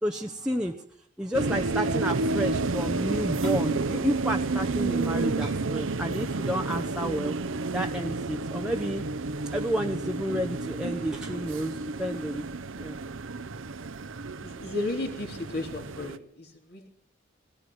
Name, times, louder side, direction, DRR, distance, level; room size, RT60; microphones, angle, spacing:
voice 1, 0.0-0.7 1.2-7.3 7.7-9.0 9.5-12.5 12.8-13.0, equal, 5° right, 1 dB, 0.9 m, -30 dB
sound 1, 1.3-16.2, right 3 dB, 85° right, 0.8 m, -31 dB
sound 2, 7.2-12.4, equal, 55° right, 0.8 m, -40 dB
voice 2, 14.4-16.9, left 2 dB, 50° left, 2 dB, 3.5 m, -34 dB
20.0 x 18.0 x 7.9 m, 0.67 s
head